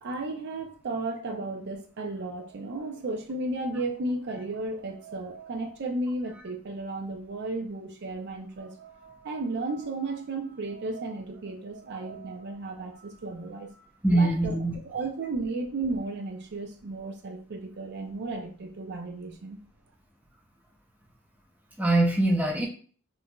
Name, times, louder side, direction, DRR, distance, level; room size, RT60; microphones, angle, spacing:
voice 1, 0.0-13.9 14.1-14.6 14.9-19.6, right 2 dB, 55° right, 4 dB, 0.5 m, -34 dB
voice 2, 14.0-14.7 21.8-22.7, right 2 dB, 10° right, -1 dB, 0.6 m, -23 dB
4.5 x 2.6 x 2.2 m, 0.43 s
head